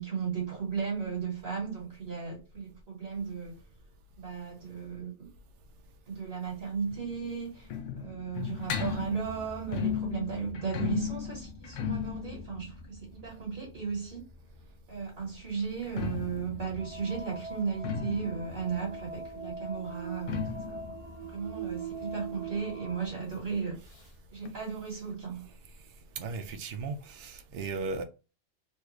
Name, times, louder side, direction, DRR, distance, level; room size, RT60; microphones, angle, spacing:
voice 1, 0.0-3.6 4.2-5.3 6.1-7.7 8.0-14.2 14.9-21.0 21.2-23.8 24.3-25.5, right 6 dB, 55° right, 1.7 m, -35 dB
sound 1, 6.9-14.6 15.7-23.1 23.3-23.4 23.7-23.8 24.5-24.6, left 7 dB, 85° left, 0.9 m, -37 dB
sound 2, 16.8-23.1, right 4 dB, 35° right, 0.7 m, -42 dB
voice 2, 26.2-28.0, right 4 dB, 80° right, 0.9 m, -36 dB
3.3 x 2.3 x 3.0 m
omnidirectional pair, 1.2 m